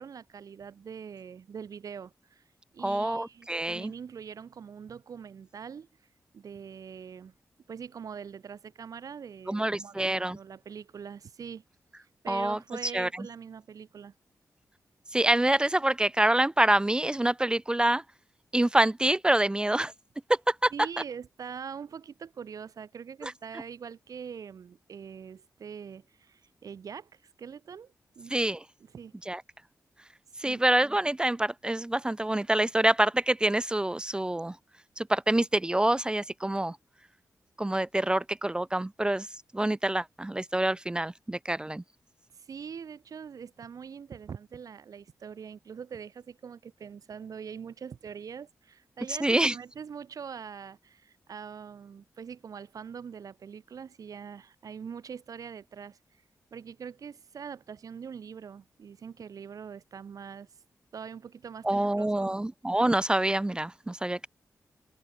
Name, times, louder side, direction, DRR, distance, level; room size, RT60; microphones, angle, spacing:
voice 1, 0.0-2.4 2.7-5.9 6.3-7.3 7.7-11.6 12.2-14.1 20.7-28.4 28.9-29.2 30.4-30.6 42.3-56.0 56.5-60.5 60.9-62.4, right 7 dB, 70° right, 2.1 m, -43 dB
voice 2, 2.8-3.9 9.5-10.4 12.3-13.3 15.1-18.0 18.5-19.9 20.3-20.7 28.3-28.6 29.3-29.4 30.4-34.6 35.0-36.8 37.6-39.3 39.5-41.8 49.2-49.5 61.6-64.3, right 1 dB, 15° right, 0.5 m, -26 dB
cardioid pair, 80°, 6 cm